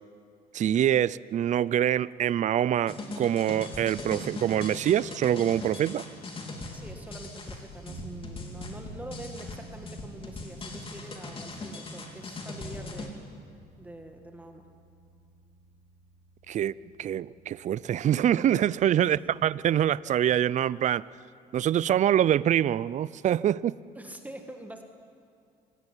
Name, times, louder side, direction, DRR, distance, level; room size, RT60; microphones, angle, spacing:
voice 1, 0.5-6.0 16.5-16.7 17.0-21.0 21.5-23.7, right 10 dB, 45° right, 20 dB, 0.5 m, -25 dB
sound 1, 2.9-13.1, left 2 dB, 30° left, 3.5 m, -40 dB
voice 2, 6.7-13.2 13.8-14.7 24.0-24.8, right 1 dB, 10° right, 4 dB, 1.8 m, -45 dB
sound 2, 7.9-20.4, right 2 dB, 60° right, 4.3 m, -50 dB
25.0 x 18.0 x 9.9 m, 2.4 s
cardioid pair, 110°, 17 cm